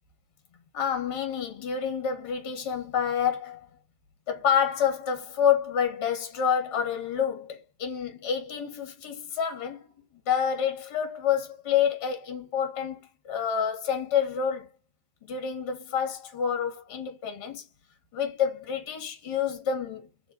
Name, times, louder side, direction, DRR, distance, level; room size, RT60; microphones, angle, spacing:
voice 1, 0.7-3.7 4.3-9.8 10.3-14.7 15.3-17.7 18.1-20.3, left 8 dB, 50° left, 1.5 m, -28 dB
6.8 x 2.4 x 2.7 m
figure-of-eight pair, 90°, 0 cm